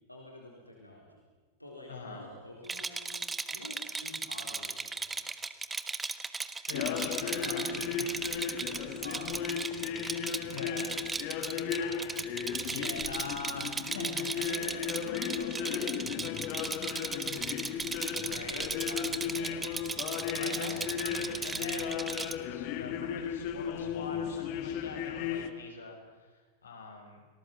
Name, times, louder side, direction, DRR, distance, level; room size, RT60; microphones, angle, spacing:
voice 1, 0.1-1.1 1.6-5.2 7.2-8.1 8.5-9.8 10.4-11.0 11.4-12.1 14.5-16.6 18.1-19.6, left 1 dB, 85° left, -2 dB, 4.3 m, -48 dB
voice 2, 1.9-2.3 6.7-7.9 10.5-11.0 12.6-14.4 18.2-18.7 20.3-27.2, left 3 dB, 70° left, 2 dB, 6.4 m, -43 dB
Rattle, 2.6-22.3, right 4 dB, 15° right, 1.3 m, -37 dB
sound 1, 6.7-25.5, left 8 dB, 45° left, 1.6 m, -35 dB
29.5 x 20.0 x 7.5 m, 1.3 s
figure-of-eight pair, 90°, 0 cm